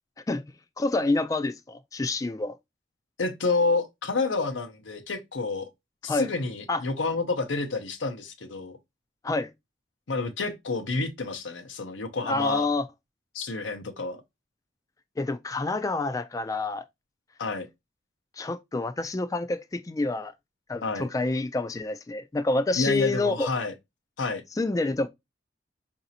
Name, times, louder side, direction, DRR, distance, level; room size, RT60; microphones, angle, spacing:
voice 1, 0.8-2.6 6.1-6.3 6.7-6.8 9.2-9.5 12.2-12.9 15.2-16.8 18.4-20.3 20.7-23.5 24.6-25.1, left 2 dB, 20° left, 0.3 m, -27 dB
voice 2, 3.2-5.7 6.0-8.8 10.1-12.7 13.3-14.2 17.4-17.7 20.8-21.1 22.8-23.7 24.2-24.4, left 3 dB, 90° left, 0.7 m, -29 dB
4.9 x 2.7 x 2.7 m
head